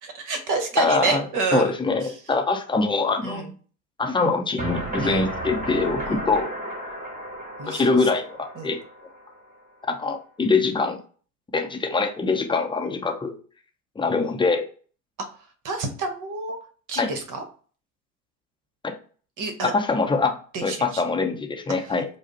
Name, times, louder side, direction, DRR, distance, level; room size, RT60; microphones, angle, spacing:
voice 1, 0.0-2.2 3.2-3.5 5.0-5.3 6.1-6.2 7.6-8.1 8.6-8.7 15.4-16.6 16.9-17.4 19.4-19.7 20.5-21.0 21.8-21.9, right 4 dB, 40° right, 7 dB, 1.1 m, -29 dB
voice 2, 0.8-1.2 1.5-3.5 4.0-6.5 6.8-6.9 7.7-8.8 9.9-11.0 11.5-13.3 14.0-14.6 17.0-17.1 18.8-18.9 19.6-20.4 20.6-22.1, left 3 dB, 10° left, 3 dB, 0.7 m, -23 dB
sound 1, 4.6-9.5, right 1 dB, 15° right, 1.4 m, -33 dB
4.8 x 2.1 x 4.0 m, 0.40 s
figure-of-eight pair, 70°, 48 cm